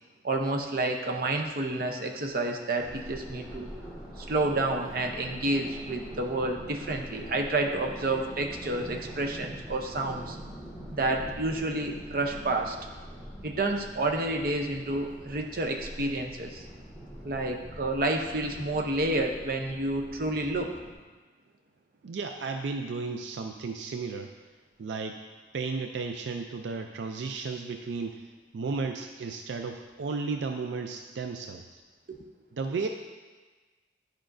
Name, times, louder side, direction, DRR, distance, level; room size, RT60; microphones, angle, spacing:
voice 1, 0.2-3.7 4.2-10.4 11.0-12.8 13.4-16.6 17.2-20.7 32.1-32.2, right 2 dB, 55° right, 3 dB, 0.7 m, -29 dB
sound 1, 2.8-20.9, equal, ahead, 1.8 m, -44 dB
voice 2, 22.0-24.3 24.8-25.2 25.5-28.3 28.5-31.8 32.5-32.9, right 4 dB, 85° right, 5 dB, 0.4 m, -34 dB
11.0 x 5.1 x 2.6 m, 1.3 s
head